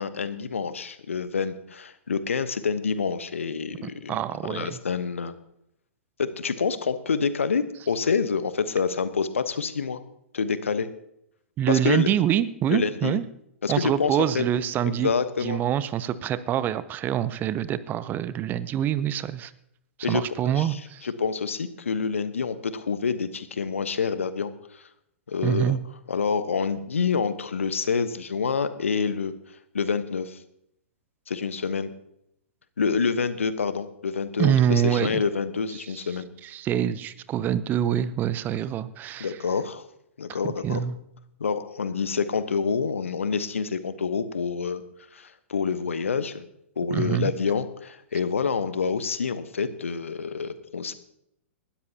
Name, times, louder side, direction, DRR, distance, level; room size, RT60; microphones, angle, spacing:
voice 1, 0.0-4.1 4.5-5.3 6.2-10.0 10.3-10.9 11.7-12.1 12.7-13.2 13.6-14.4 14.8-15.6 20.0-24.9 25.3-25.7 26.1-29.3 29.7-30.4 31.3-31.9 32.8-36.3 39.2-39.8 40.2-40.8 41.4-44.8 45.1-46.4 46.8-50.9, left 5 dB, 75° left, 12 dB, 1.1 m, -27 dB
voice 2, 3.8-4.8 11.6-13.2 13.7-15.1 15.4-19.5 20.0-21.1 25.4-25.8 34.4-35.2 36.4-39.4 40.3-40.9 46.9-47.3, right 10 dB, 25° right, 16 dB, 0.7 m, -25 dB
19.5 x 13.0 x 2.9 m, 0.76 s
figure-of-eight pair, 110°, 7 cm